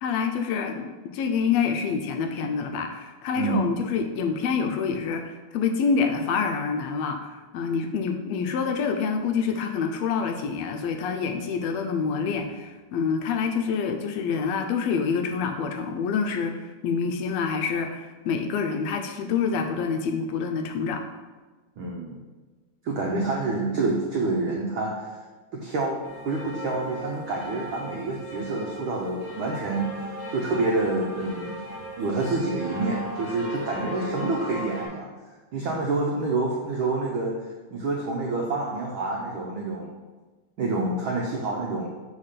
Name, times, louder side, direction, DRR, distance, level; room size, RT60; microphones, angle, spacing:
voice 1, 0.0-21.1, left 5 dB, 80° left, 5 dB, 1.6 m, -27 dB
voice 2, 3.4-3.8 21.8-22.2 22.8-25.1 25.5-26.0 26.2-29.9 30.3-31.6 32.0-35.1 35.5-37.4 37.7-39.9 40.6-41.9, right 3 dB, 80° right, -2 dB, 1.1 m, -27 dB
sound 1, 26.0-34.9, equal, 40° left, 2.6 m, -37 dB
5.0 x 4.4 x 5.7 m, 1.3 s
omnidirectional pair, 3.3 m